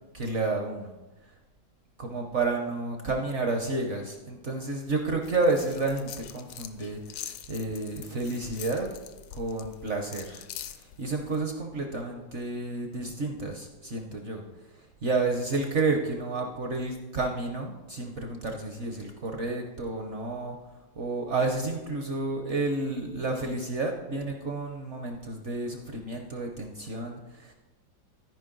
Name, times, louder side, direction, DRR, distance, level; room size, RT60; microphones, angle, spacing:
voice 1, 0.1-1.0 2.0-8.9 9.3-10.5 10.7-14.4 15.0-20.6 21.0-27.5, right 3 dB, 60° right, 3 dB, 0.7 m, -30 dB
sound 1, 5.2-11.4, left 10 dB, 75° left, 1.2 m, -44 dB
13.5 x 5.2 x 3.8 m, 1.1 s
omnidirectional pair, 2.1 m